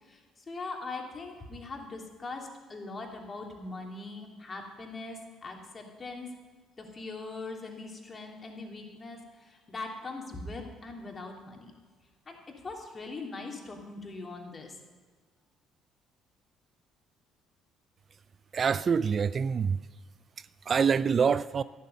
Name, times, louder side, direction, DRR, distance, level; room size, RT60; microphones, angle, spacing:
voice 1, 0.0-6.3 6.8-11.7 12.3-12.4 12.6-14.7, left 3 dB, 35° left, 3.1 m, -41 dB
voice 2, 18.5-19.8 20.4-21.6, right 6 dB, 45° right, 0.4 m, -26 dB
13.0 x 12.0 x 5.4 m
hypercardioid pair, 55°, 0 cm